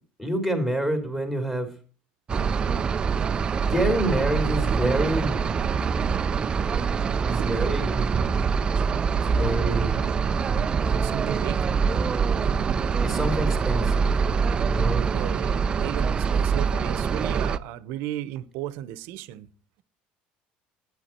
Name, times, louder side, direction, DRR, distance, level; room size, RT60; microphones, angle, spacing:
voice 1, 0.2-1.7 3.7-5.4 7.2-8.0 9.3-10.0 13.0-14.1 14.6-15.1, right 1 dB, 5° left, 2.8 m, -27 dB
sound 1, 2.3-17.6, right 6 dB, 25° right, 0.4 m, -24 dB
voice 2, 11.0-11.7 15.1-19.5, right 12 dB, 75° right, 0.8 m, -34 dB
11.0 x 9.1 x 4.4 m
cardioid pair, 140°, 4 cm